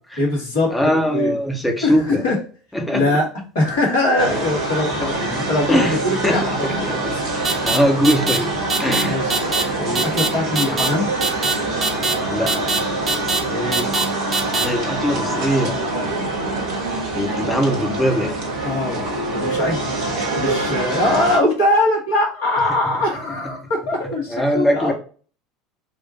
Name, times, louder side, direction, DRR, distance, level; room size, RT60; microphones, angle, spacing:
voice 1, 0.2-1.4 1.8-2.4 2.9-3.3 3.5-7.1 9.1-9.3 9.8-11.1 13.5-13.9 18.6-19.8 20.3-24.9, left 1 dB, 65° left, -2 dB, 1.8 m, -22 dB
voice 2, 0.7-2.2 2.7-3.1 5.0-5.1 5.7-6.0 6.2-7.2 7.6-8.5 8.8-9.2 12.3-12.7 14.6-15.8 17.2-18.4 24.3-24.9, equal, 10° left, 2 dB, 1.0 m, -21 dB
sound 1, 4.2-21.4, right 2 dB, 60° right, 1.3 m, -25 dB
sound 2, 7.4-7.8 8.0-8.4 8.7-9.0 9.3-9.6 9.9-10.3 10.6-10.9 11.2-11.5 11.8-12.1 12.5-12.8 13.1-13.4 13.7-14.0 14.3-14.6, right 4 dB, 25° right, 0.9 m, -21 dB
4.3 x 2.4 x 4.0 m, 0.39 s
figure-of-eight pair, 70°, 0 cm